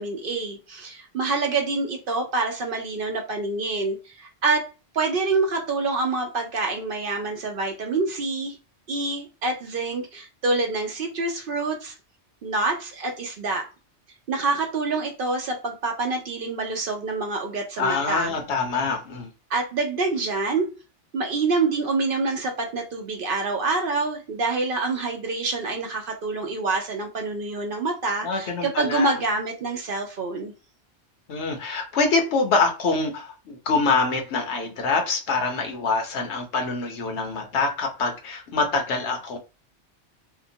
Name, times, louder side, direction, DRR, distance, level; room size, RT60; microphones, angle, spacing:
voice 1, 0.0-4.7 4.9-8.6 8.9-11.9 12.4-13.7 14.3-18.3 19.5-20.7 21.1-30.5, right 3 dB, 60° right, 0.7 m, -26 dB
voice 2, 17.8-19.3 28.2-29.1 31.3-39.4, left 4 dB, 75° left, 1.0 m, -25 dB
2.8 x 2.2 x 2.6 m
omnidirectional pair, 1.2 m